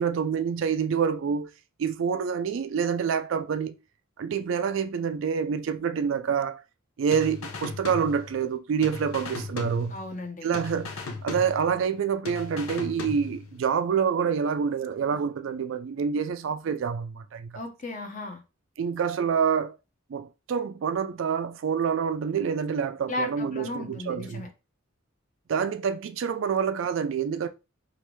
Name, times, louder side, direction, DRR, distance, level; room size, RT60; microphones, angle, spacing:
voice 1, 0.0-1.5 1.8-3.7 4.2-6.6 7.0-10.0 10.4-11.0 11.2-17.6 18.8-19.8 20.1-24.5 25.5-27.5, right 6 dB, 60° right, 0.3 m, -27 dB
sound 1, 7.1-8.6 8.8-10.3 10.5-12.0 12.3-13.6, left 3 dB, 85° left, 0.6 m, -37 dB
voice 2, 9.9-10.6 17.5-18.4 23.1-24.5, left 2 dB, 35° left, 0.8 m, -35 dB
3.2 x 2.5 x 3.1 m
head